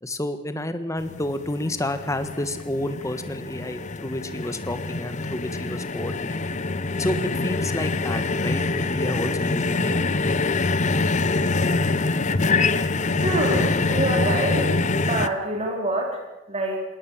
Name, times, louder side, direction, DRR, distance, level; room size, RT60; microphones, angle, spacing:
voice 1, 0.0-6.4 7.0-10.0, left 1 dB, 15° left, 10 dB, 1.4 m, -30 dB
sound 1, 1.0-15.3, left 3 dB, 40° left, 0.7 m, -25 dB
voice 2, 13.1-16.8, right 1 dB, 30° right, 1 dB, 3.8 m, -26 dB
19.5 x 19.0 x 7.3 m, 1.0 s
head